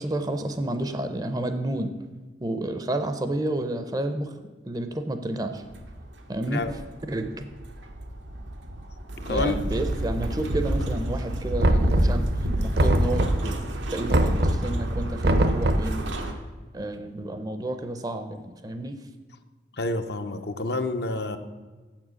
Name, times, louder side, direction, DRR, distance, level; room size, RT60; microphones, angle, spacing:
voice 1, 0.0-1.9 2.4-4.3 4.6-5.6 6.3-6.6 7.1-7.5 9.3-12.3 12.6-13.5 13.9-16.0 16.7-19.0, right 1 dB, 20° right, 9 dB, 0.6 m, -30 dB
sound 1, 5.7-16.3, right 1 dB, 90° right, 1.0 m, -30 dB
voice 2, 9.3-9.6 19.8-21.4, left 2 dB, 60° left, 8 dB, 0.6 m, -28 dB
Knock, 11.6-12.3 12.8-13.5 14.1-14.7 15.2-16.0, right 1 dB, 60° right, 0.8 m, -22 dB
7.4 x 7.2 x 6.3 m, 1.3 s
head